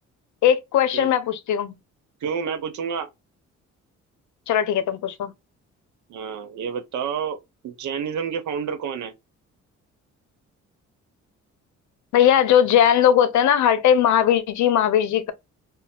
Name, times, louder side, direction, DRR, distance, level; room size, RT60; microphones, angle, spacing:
voice 1, 0.4-1.7 4.5-5.3 12.1-15.3, left 9 dB, 70° left, 0.6 m, -19 dB
voice 2, 2.2-3.1 6.1-7.4 7.6-9.1, right 6 dB, 70° right, 0.8 m, -29 dB
4.1 x 2.0 x 2.3 m
cardioid pair, 90°, 30 cm